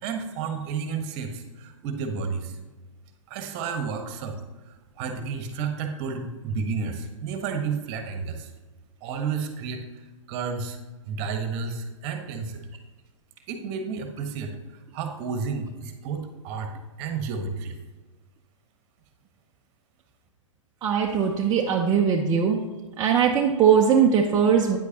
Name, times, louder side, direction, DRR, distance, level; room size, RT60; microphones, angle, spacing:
voice 1, 0.0-2.6 3.3-4.4 4.7-8.5 9.0-10.8 11.1-12.6 13.5-14.6 14.9-16.7 17.0-17.8, right 5 dB, 35° right, 6 dB, 1.2 m, -31 dB
voice 2, 20.8-22.6 23.0-24.8, right 7 dB, 20° right, 0 dB, 0.6 m, -20 dB
9.3 x 8.1 x 2.9 m, 1.3 s
hypercardioid pair, 120°, 16 cm